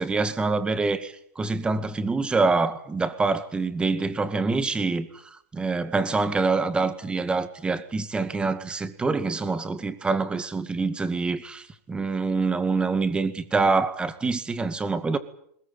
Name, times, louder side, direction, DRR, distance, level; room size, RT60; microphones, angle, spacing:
voice 1, 0.0-5.1 5.5-15.2, right 3 dB, 10° right, 2.1 m, -25 dB
21.5 x 21.0 x 9.0 m
hypercardioid pair, 130°, 9 cm